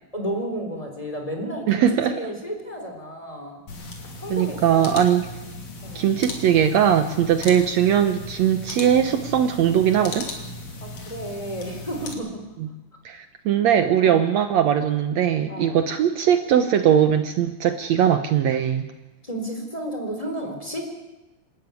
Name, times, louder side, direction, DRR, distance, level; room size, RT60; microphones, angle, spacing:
voice 1, 0.1-3.6 4.2-4.8 5.8-6.1 10.8-12.4 14.0-14.3 15.5-15.8 19.2-20.9, right 1 dB, 10° left, 2 dB, 3.4 m, -32 dB
voice 2, 1.7-2.2 4.3-5.2 5.9-10.3 12.6-12.7 13.0-18.9, right 9 dB, 85° right, 8 dB, 1.5 m, -20 dB
sound 1, 3.7-12.1, left 2 dB, 45° left, 3.9 m, -37 dB
26.5 x 13.0 x 9.6 m, 1.1 s
omnidirectional pair, 4.4 m